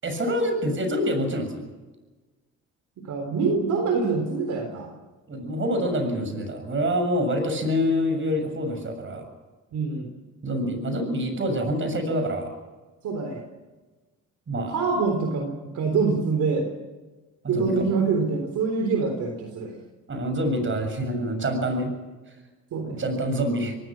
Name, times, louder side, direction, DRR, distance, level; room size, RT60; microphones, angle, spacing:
voice 1, 0.0-1.6 5.3-9.3 10.4-12.6 14.5-14.8 17.4-17.9 20.1-21.9 22.9-23.8, equal, 40° right, 7 dB, 7.0 m, -26 dB
voice 2, 3.0-4.9 9.7-10.1 13.0-13.4 14.7-16.7 17.5-19.7 22.7-23.0, right 4 dB, 75° right, 4 dB, 3.7 m, -25 dB
24.5 x 19.0 x 6.2 m, 1.2 s
cardioid pair, 90°, 30 cm